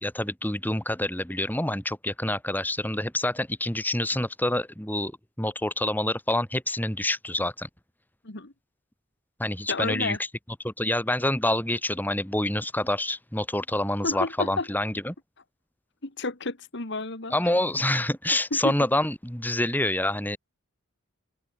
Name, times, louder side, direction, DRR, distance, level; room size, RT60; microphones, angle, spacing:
voice 1, 0.0-5.1 5.4-7.7 9.4-10.2 10.6-15.1 17.3-20.4, left 1 dB, 10° left, 4.7 m, -27 dB
voice 2, 9.7-10.2 14.0-14.7 16.0-17.3 18.5-18.7, left 3 dB, 60° left, 2.1 m, -31 dB
open air
head